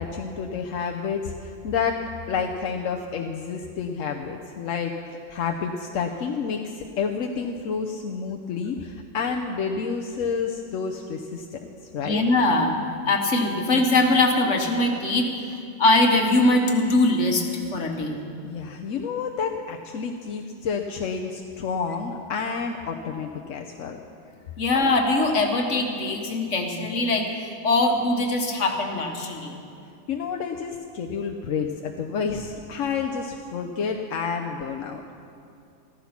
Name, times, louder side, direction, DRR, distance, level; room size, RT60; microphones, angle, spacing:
voice 1, 0.0-2.0 2.3-4.9 5.3-11.6 11.9-12.2 18.4-24.0 30.1-35.0, left 6 dB, 90° left, 2 dB, 1.2 m, -29 dB
voice 2, 12.0-12.8 13.1-15.3 15.8-17.5 17.7-18.2 24.6-27.3 27.6-29.6, left 2 dB, 70° left, 3 dB, 1.8 m, -21 dB
14.5 x 14.0 x 5.8 m, 2.5 s
omnidirectional pair, 1.3 m